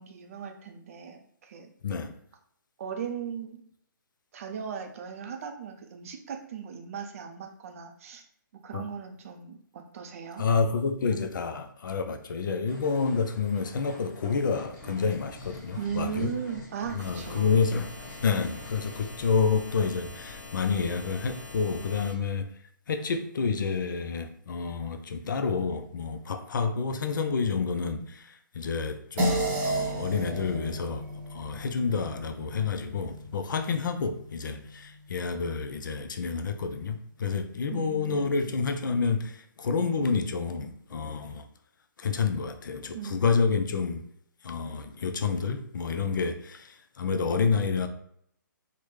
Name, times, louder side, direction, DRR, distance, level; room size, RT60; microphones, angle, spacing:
voice 1, 0.0-1.7 2.8-3.6 4.3-8.3 8.6-10.4 15.8-17.6 37.7-38.5 42.9-43.2, right 7 dB, 40° right, 0.4 m, -37 dB
voice 2, 1.8-2.2 8.7-8.8 10.4-16.3 16.9-17.9 18.2-22.5 22.9-31.0 31.3-41.5 42.0-44.0 44.4-47.9, left 5 dB, 70° left, 0.4 m, -29 dB
sound 1, 12.7-19.1, left 2 dB, 45° left, 1.2 m, -47 dB
sound 2, 17.0-22.1, left 3 dB, 20° left, 0.7 m, -44 dB
sound 3, 29.2-33.9, right 1 dB, 20° right, 0.8 m, -32 dB
3.3 x 2.1 x 3.0 m
hypercardioid pair, 145°, 11 cm